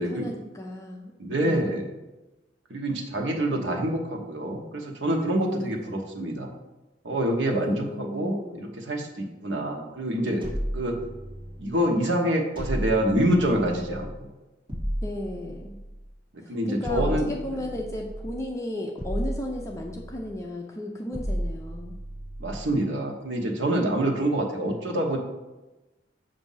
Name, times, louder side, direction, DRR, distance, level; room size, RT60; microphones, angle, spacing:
voice 1, 0.0-1.1 1.4-1.8 5.3-6.0 7.5-8.7 15.0-15.8 16.4-22.0, left 1 dB, 15° left, 0 dB, 0.5 m, -35 dB
voice 2, 1.2-1.9 2.7-6.5 7.0-10.5 10.7-11.0 11.6-14.1 16.5-17.3 22.4-25.2, right 1 dB, 85° right, 2 dB, 1.0 m, -26 dB
sound 1, 10.4-11.7 12.6-14.2 14.7-16.1 16.8-18.4 19.0-20.4 21.1-22.7, equal, 30° right, 1.8 m, -33 dB
7.2 x 2.6 x 5.5 m, 1.1 s
head